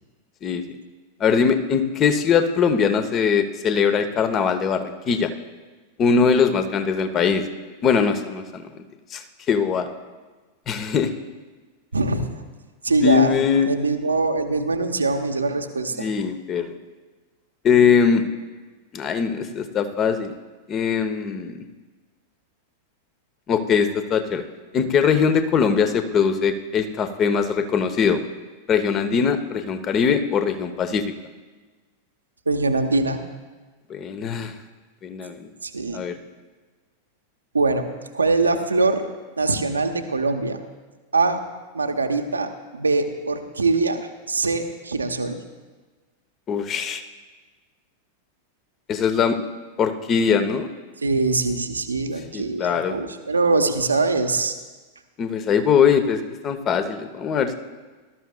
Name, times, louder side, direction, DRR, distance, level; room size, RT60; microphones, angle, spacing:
voice 1, 1.2-5.3 6.0-7.4 7.8-8.6 9.1-9.9 10.7-11.1 13.0-13.7 16.0-16.7 17.6-18.2 18.9-20.3 20.7-21.6 23.5-24.4 24.7-28.2 28.7-31.0 33.9-34.5 35.0-35.5 35.9-36.1 46.5-47.0 48.9-49.4 49.8-50.7 52.3-53.0 55.2-57.6, left 6 dB, 30° left, 9 dB, 0.9 m, -21 dB
voice 2, 11.9-12.3 12.8-13.4 13.7-16.1 32.5-33.2 35.6-36.0 37.5-37.9 38.1-39.0 39.4-40.6 41.1-41.4 41.7-45.4 51.0-54.5, right 3 dB, 75° right, 6 dB, 0.8 m, -23 dB
18.0 x 13.0 x 2.3 m, 1.3 s
figure-of-eight pair, 90°, 0 cm